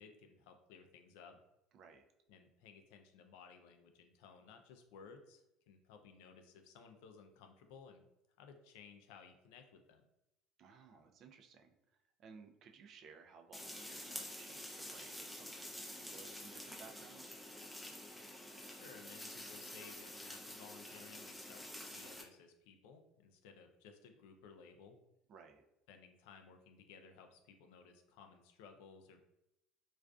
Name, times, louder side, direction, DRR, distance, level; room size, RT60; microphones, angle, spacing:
voice 1, 0.0-1.4 2.3-8.0 8.4-10.0 18.7-25.0 25.9-29.2, left 6 dB, 85° left, 6 dB, 0.3 m, -58 dB
voice 2, 1.7-2.1 10.6-11.8 12.2-17.4 25.3-25.6, right 5 dB, 50° right, 4 dB, 0.3 m, -59 dB
sound 1, 13.5-22.2, left 1 dB, 5° left, 0.5 m, -49 dB
2.4 x 2.3 x 2.2 m, 0.87 s
supercardioid pair, 110°, 0 cm